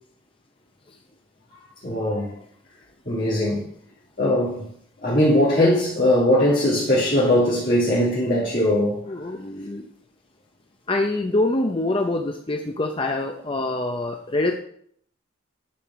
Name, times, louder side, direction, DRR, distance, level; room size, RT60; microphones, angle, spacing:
voice 1, 1.8-2.3 3.1-3.6 4.2-4.7 5.0-9.0, left 1 dB, 45° left, 2.4 m, -20 dB
voice 2, 9.1-9.9 10.9-14.6, left 2 dB, 25° left, 0.6 m, -25 dB
10.0 x 4.8 x 6.2 m
head